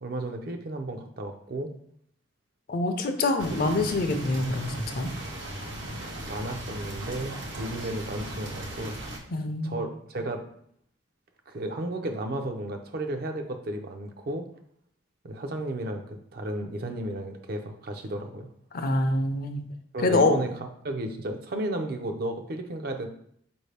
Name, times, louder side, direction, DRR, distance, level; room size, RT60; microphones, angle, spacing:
voice 1, 0.0-1.7 6.3-9.0 9.6-10.5 11.5-14.5 15.2-18.5 19.9-20.5 20.8-23.1, right 1 dB, 55° right, 5 dB, 0.5 m, -33 dB
voice 2, 2.7-5.1 9.3-9.8 18.7-19.7 20.0-20.4, left 2 dB, 50° left, 7 dB, 0.5 m, -25 dB
sound 1, 3.4-9.2, right 1 dB, 80° right, 0.8 m, -37 dB
4.7 x 2.6 x 3.3 m, 0.68 s
head